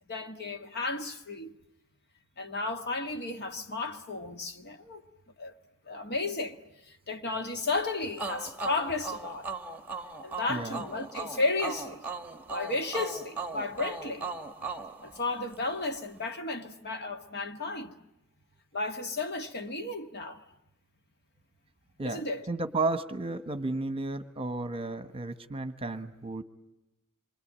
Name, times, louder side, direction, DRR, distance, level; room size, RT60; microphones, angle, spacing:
voice 1, 0.1-1.5 2.4-5.0 5.4-5.5 5.8-6.6 6.9-9.5 10.2-12.0 12.5-14.3 15.0-17.9 18.7-20.4 22.0-22.5, left 3 dB, 50° left, 1.8 m, -33 dB
sound 1, 8.2-15.8, right 4 dB, 10° right, 1.4 m, -38 dB
voice 2, 10.5-10.8 22.0-22.2 22.5-26.4, right 2 dB, 25° right, 1.2 m, -33 dB
27.0 x 23.5 x 8.8 m
head